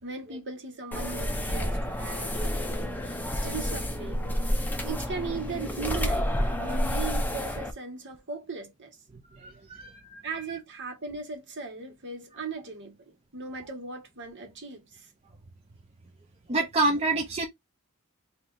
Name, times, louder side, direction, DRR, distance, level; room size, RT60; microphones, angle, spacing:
voice 1, 0.0-4.3 4.8-9.0 10.2-15.1, right 4 dB, 55° right, 1.5 m, -38 dB
sound 1, 0.9-7.7, equal, 10° left, 0.7 m, -29 dB
voice 2, 9.3-10.2 16.5-17.5, right 2 dB, 30° right, 0.7 m, -28 dB
3.2 x 2.8 x 3.9 m
head